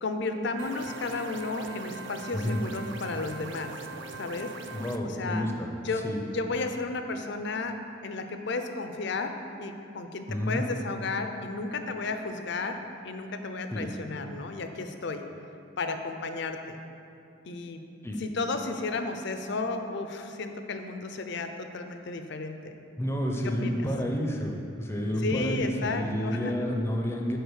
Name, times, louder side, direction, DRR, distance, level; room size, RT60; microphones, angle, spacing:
voice 1, 0.0-3.8 4.2-4.5 5.0-5.5 5.8-7.8 8.0-15.3 15.8-16.8 17.4-17.8 18.2-22.7 23.4-23.8 25.2-26.7, left 3 dB, 55° left, 7 dB, 0.6 m, -33 dB
sound 1, 0.6-5.0, right 3 dB, 60° right, 0.4 m, -41 dB
voice 2, 4.7-5.7 6.0-6.2 10.3-10.6 13.7-13.9 18.0-18.2 23.0-27.4, equal, 10° left, 1 dB, 0.6 m, -30 dB
8.1 x 4.8 x 6.4 m, 2.6 s
head